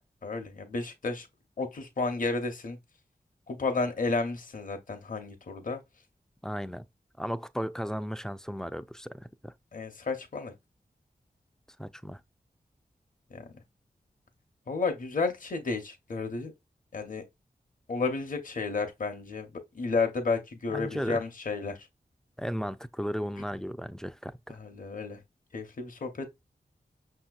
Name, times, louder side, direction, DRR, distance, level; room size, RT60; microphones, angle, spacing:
voice 1, 0.2-1.3 1.6-2.8 3.5-5.8 9.7-10.5 13.3-13.5 14.7-16.5 16.9-17.2 17.9-21.9 24.5-25.2 25.5-26.3, left 4 dB, 55° left, 0.8 m, -32 dB
voice 2, 6.4-6.8 7.2-9.5 11.8-12.2 20.7-21.2 22.4-24.6, equal, 5° left, 0.4 m, -35 dB
5.6 x 2.7 x 2.3 m
cardioid pair, 40°, 16 cm